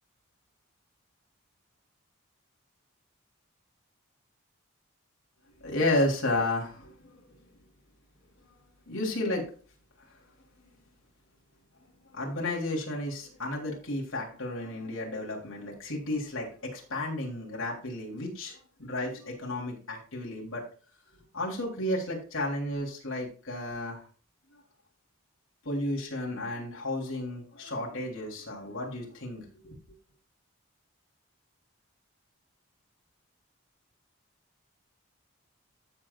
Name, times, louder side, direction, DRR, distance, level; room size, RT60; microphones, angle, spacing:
voice 1, 5.6-7.2 8.9-9.5 12.1-20.6 21.3-24.0 24.5-24.6 25.6-29.8, left 1 dB, 70° left, -2 dB, 3.4 m, -32 dB
14.5 x 6.4 x 2.4 m, 0.40 s
head